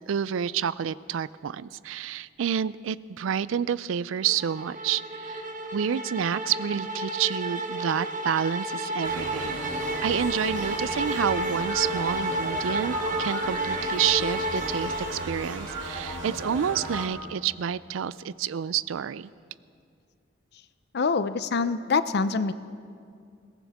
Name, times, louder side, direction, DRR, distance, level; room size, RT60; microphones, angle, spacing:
voice 1, 0.1-9.6 10.0-19.3, right 8 dB, 85° right, 18 dB, 0.4 m, -29 dB
sound 1, 4.2-15.6, right 1 dB, 45° right, 1.3 m, -31 dB
sound 2, 9.0-17.0, right 1 dB, 70° right, 2.8 m, -36 dB
voice 2, 20.9-22.5, left 4 dB, 60° left, 13 dB, 0.6 m, -25 dB
21.0 x 18.0 x 3.6 m, 2.3 s
head